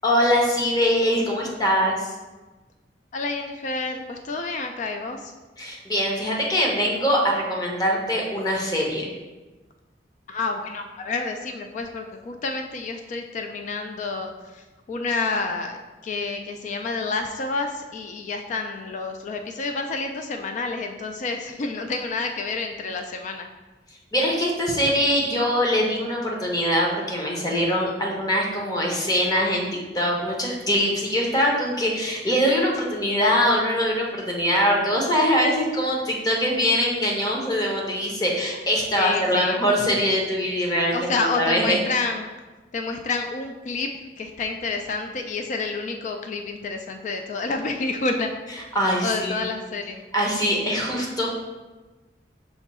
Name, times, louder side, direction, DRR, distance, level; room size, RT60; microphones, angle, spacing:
voice 1, 0.0-2.1 5.6-9.1 24.1-29.7 29.9-41.8 48.7-49.4 50.1-51.3, equal, 20° left, -1 dB, 0.8 m, -23 dB
voice 2, 3.1-5.3 10.3-15.8 16.0-23.5 39.0-39.6 40.9-42.3 42.7-43.9 44.2-48.3 49.0-50.0, left 3 dB, 45° left, 5 dB, 0.3 m, -29 dB
5.7 x 2.2 x 4.1 m, 1.2 s
head